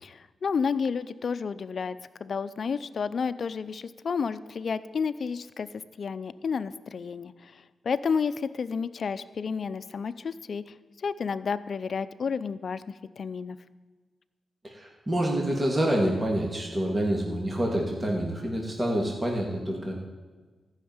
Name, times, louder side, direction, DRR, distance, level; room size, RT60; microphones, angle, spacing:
voice 1, 0.0-5.7 6.0-13.6, left 5 dB, 60° left, 13 dB, 0.6 m, -31 dB
voice 2, 14.6-20.0, right 1 dB, 25° right, -1 dB, 2.5 m, -27 dB
14.0 x 6.5 x 9.5 m, 1.4 s
cardioid pair, 80°, 0 cm